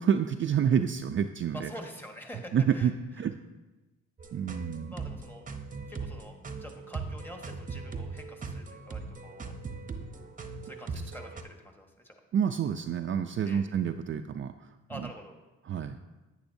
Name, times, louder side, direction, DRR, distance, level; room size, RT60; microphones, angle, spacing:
voice 1, 0.0-1.7 2.5-3.3 4.3-4.9 12.3-14.7 14.9-15.1 15.6-16.0, right 8 dB, 40° right, 6 dB, 0.4 m, -28 dB
voice 2, 1.5-2.9 4.9-5.4 5.9-9.5 10.6-12.2 13.4-13.7 14.9-15.4, equal, 5° left, 2 dB, 1.4 m, -46 dB
sound 1, 4.2-11.4, right 4 dB, 25° right, 0.8 m, -40 dB
10.5 x 9.1 x 2.7 m, 1.1 s
cardioid pair, 90°, 30 cm